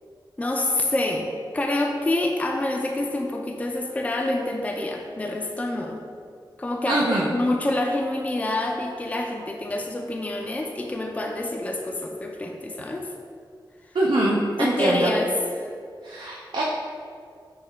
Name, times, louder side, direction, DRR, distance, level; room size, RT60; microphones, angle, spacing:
voice 1, 0.4-1.3 1.5-6.0 6.6-13.1 14.6-15.7, left 2 dB, 15° left, 2 dB, 0.3 m, -27 dB
voice 2, 6.9-7.3 13.9-15.1 16.0-16.6, right 1 dB, 65° right, -4 dB, 0.5 m, -23 dB
6.5 x 2.2 x 3.3 m, 2.2 s
wide cardioid pair, 95°, 9 cm